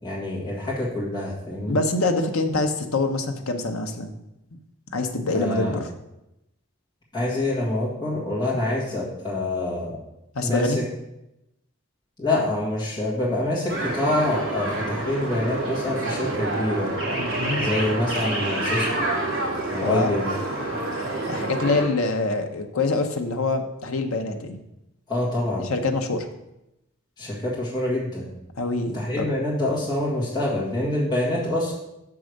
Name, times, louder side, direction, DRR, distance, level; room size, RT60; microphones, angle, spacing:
voice 1, 0.0-1.8 5.3-5.8 7.1-10.0 10.4-10.7 12.2-16.9 17.6-19.1 19.7-20.3 25.1-25.7 27.2-28.3 28.9-31.7, left 1 dB, 20° left, -8 dB, 1.8 m, -26 dB
voice 2, 1.7-4.1 4.9-5.9 8.5-8.6 10.3-10.8 17.2-17.7 19.8-20.1 21.3-24.6 25.6-26.3 28.6-29.3, left 3 dB, 80° left, 6 dB, 0.8 m, -25 dB
sound 1, 13.7-21.8, right 2 dB, 65° right, 2.8 m, -28 dB
6.2 x 4.8 x 6.4 m, 0.89 s
head